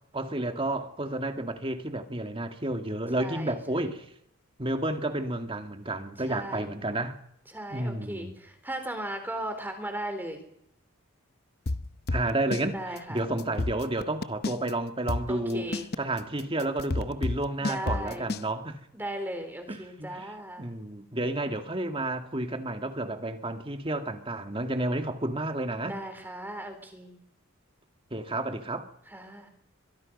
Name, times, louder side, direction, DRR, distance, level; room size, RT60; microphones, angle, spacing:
voice 1, 0.1-4.1 4.6-7.2 7.7-8.3 12.1-15.7 16.0-18.8 19.7-26.0 28.1-28.9, right 1 dB, 25° right, 2.0 m, -31 dB
voice 2, 3.2-3.5 6.3-6.7 7.5-10.4 12.7-13.3 15.3-15.9 17.6-18.3 18.9-20.7 25.8-27.2 29.1-29.5, right 1 dB, 10° right, 4.0 m, -37 dB
sound 1, 11.7-12.7 13.0-13.1 13.4-14.7 15.1-18.5, left 2 dB, 45° left, 0.8 m, -30 dB
23.5 x 22.5 x 5.4 m
head